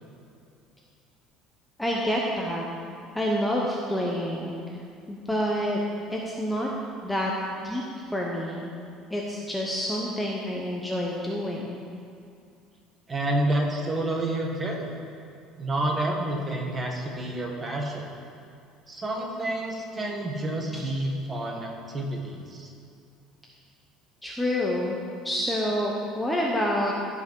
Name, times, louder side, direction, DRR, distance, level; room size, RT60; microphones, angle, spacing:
voice 1, 1.8-2.6 3.1-4.6 5.1-5.8 6.1-6.7 7.0-7.3 7.6-7.8 8.1-8.7 9.1-11.8 20.7-20.8 24.2-25.0 25.2-26.9, equal, 5° left, -3 dB, 0.8 m, -28 dB
voice 2, 13.1-14.9 15.6-18.0 18.9-22.7, right 1 dB, 20° right, 1 dB, 1.3 m, -29 dB
15.0 x 5.6 x 4.6 m, 2.5 s
cardioid pair, 155°, 0 cm